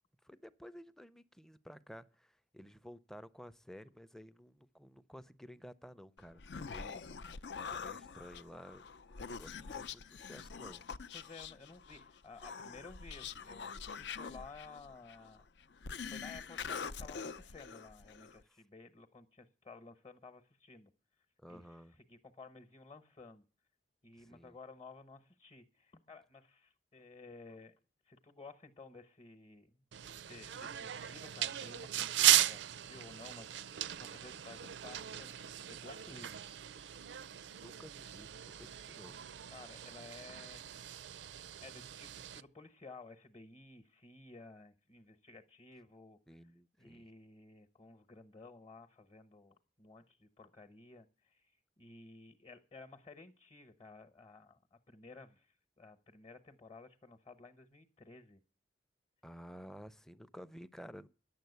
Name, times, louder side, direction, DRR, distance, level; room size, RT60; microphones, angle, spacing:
voice 1, 0.2-7.3 7.7-8.9 9.3-10.8 18.5-18.6 21.4-21.9 24.2-24.6 37.4-39.2 46.3-47.1 59.2-61.1, equal, 5° left, 0.5 m, -53 dB
Human voice, 6.2-18.4, left 6 dB, 70° left, 0.5 m, -45 dB
voice 2, 9.5-9.9 11.1-15.5 16.1-20.9 21.5-23.4 24.0-27.8 28.1-29.8 30.3-36.4 39.5-40.7 41.6-46.2 46.8-58.4, left 3 dB, 30° left, 0.9 m, -55 dB
sound 1, 29.9-42.4, right 12 dB, 85° right, 0.5 m, -36 dB
10.5 x 7.1 x 8.0 m
head